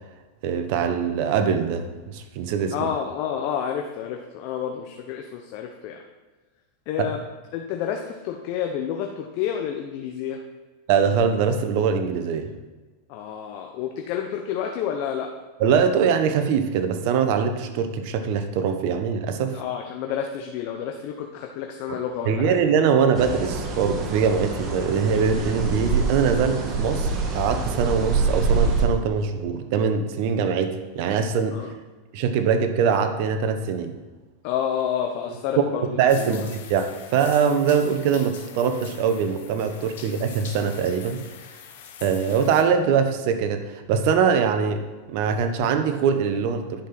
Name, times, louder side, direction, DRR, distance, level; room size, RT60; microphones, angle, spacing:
voice 1, 0.4-2.9 7.0-7.1 10.9-12.5 15.6-19.6 21.9-22.0 22.3-31.6 32.1-34.0 36.0-41.2 42.0-44.8 45.1-46.9, right 6 dB, 60° right, 8 dB, 1.1 m, -23 dB
voice 2, 2.7-6.0 6.9-7.2 7.5-10.4 13.1-15.3 19.5-22.6 31.5-31.7 34.4-36.4, left 8 dB, 55° left, 3 dB, 1.0 m, -29 dB
sound 1, 23.2-28.8, right 4 dB, 35° right, 1.9 m, -25 dB
sound 2, 36.1-42.6, left 8 dB, 70° left, 1.3 m, -43 dB
10.5 x 5.6 x 6.0 m, 1.3 s
hypercardioid pair, 110°, 0 cm